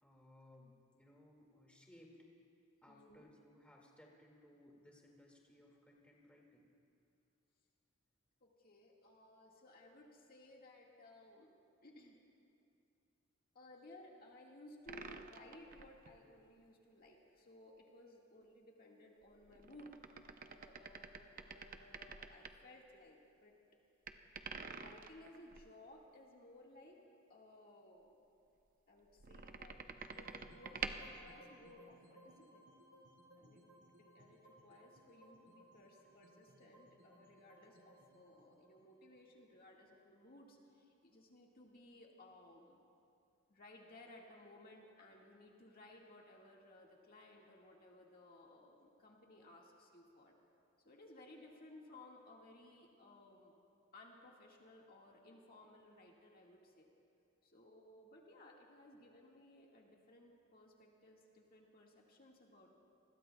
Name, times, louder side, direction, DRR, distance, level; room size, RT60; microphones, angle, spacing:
voice 1, 0.0-2.2 2.8-6.7 37.6-37.7, left 1 dB, 5° left, -2 dB, 2.1 m, -63 dB
voice 2, 2.9-3.3 8.4-11.5 11.8-12.2 13.5-19.9 20.4-23.6 24.6-27.0 27.3-28.1 28.9-32.7 33.4-33.6 34.0-42.8 43.5-50.4 50.9-53.6 53.9-56.9 57.4-62.8, left 1 dB, 45° left, -2 dB, 1.8 m, -60 dB
sound 1, 14.9-16.2 19.4-22.6 24.1-25.7 29.2-31.1, right 5 dB, 45° right, 0.7 m, -48 dB
sound 2, 30.0-40.2, right 1 dB, 70° right, 1.7 m, -64 dB
28.0 x 21.0 x 2.3 m, 2.6 s
head